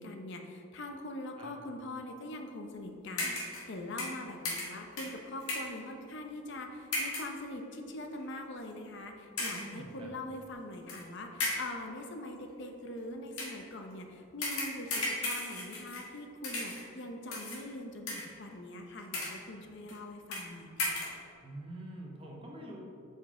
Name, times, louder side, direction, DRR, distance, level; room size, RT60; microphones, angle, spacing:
voice 1, 0.0-21.0, left 1 dB, 55° left, 3 dB, 0.7 m, -43 dB
sound 1, 3.2-3.7 4.0-5.8 6.9-7.4 8.1-8.2 9.4-9.8 10.9-11.0 11.4-11.8 13.3-13.6 14.4-16.2 16.4-16.9 17.3-17.6 18.1-18.5 19.0-19.5 19.9-20.0 20.3-20.5 20.8-21.2, left 2 dB, 80° left, 1.5 m, -36 dB
voice 2, 9.5-10.2 21.4-22.8, right 1 dB, 25° right, -2 dB, 1.1 m, -45 dB
7.0 x 5.4 x 3.7 m, 2.6 s
head